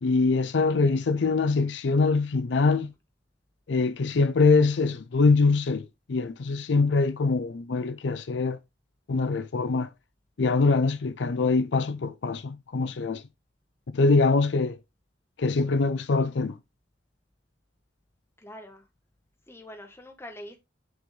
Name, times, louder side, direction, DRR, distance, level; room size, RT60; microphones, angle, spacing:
voice 1, 0.0-2.9 3.7-8.6 9.1-9.9 10.4-13.2 13.9-14.8 15.4-16.5, left 4 dB, 70° left, 0.5 m, -23 dB
voice 2, 18.4-18.8 19.5-20.6, left 1 dB, 15° left, 1.1 m, -44 dB
6.3 x 5.3 x 3.2 m
head